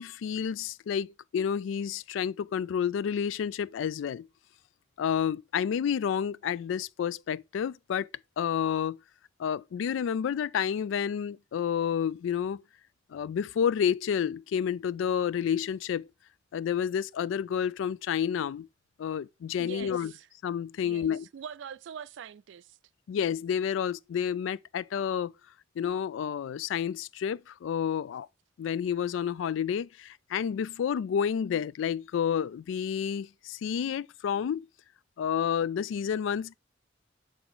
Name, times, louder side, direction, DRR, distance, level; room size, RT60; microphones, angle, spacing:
voice 1, 0.0-4.3 5.0-8.1 8.4-9.0 9.4-12.6 13.1-16.1 16.5-18.7 19.0-20.1 20.4-21.2 23.1-25.3 25.8-28.3 28.6-34.7 35.2-36.6, left 8 dB, 85° left, 0.3 m, -30 dB
voice 2, 19.6-20.3 20.8-22.8, right 7 dB, 70° right, 0.3 m, -44 dB
7.8 x 3.4 x 3.9 m
head